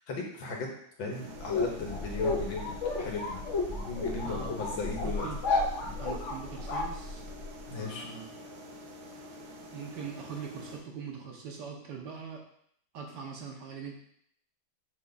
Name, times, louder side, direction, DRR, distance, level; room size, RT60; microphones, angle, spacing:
voice 1, 0.1-0.7 1.0-3.4 3.7-5.3 5.8-6.0 7.7-8.1, left 4 dB, 75° left, 0 dB, 1.9 m, -37 dB
sound 1, 1.1-10.8, equal, 85° right, 1.7 m, -47 dB
sound 2, 1.3-7.6, left 3 dB, 55° left, 0.9 m, -32 dB
voice 2, 4.2-4.6 5.0-5.4 6.0-7.2 7.7-8.3 9.7-12.4 12.9-13.9, right 6 dB, 65° right, 1 dB, 1.4 m, -41 dB
7.2 x 3.4 x 4.0 m, 0.68 s
omnidirectional pair, 2.2 m